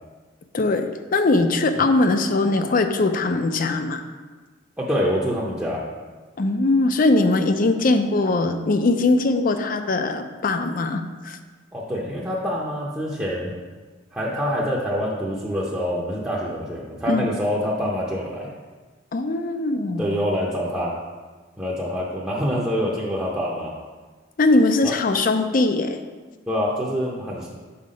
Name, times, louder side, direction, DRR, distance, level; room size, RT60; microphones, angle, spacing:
voice 1, 0.5-4.0 6.4-11.4 17.1-17.3 19.1-20.1 24.4-26.0, left 2 dB, 45° left, 8 dB, 0.5 m, -21 dB
voice 2, 4.8-5.8 11.7-13.5 14.1-18.5 20.0-21.0 21.6-23.7 24.8-24.9 26.5-27.5, equal, 10° right, -7 dB, 0.7 m, -26 dB
5.7 x 4.5 x 5.1 m, 1.4 s
head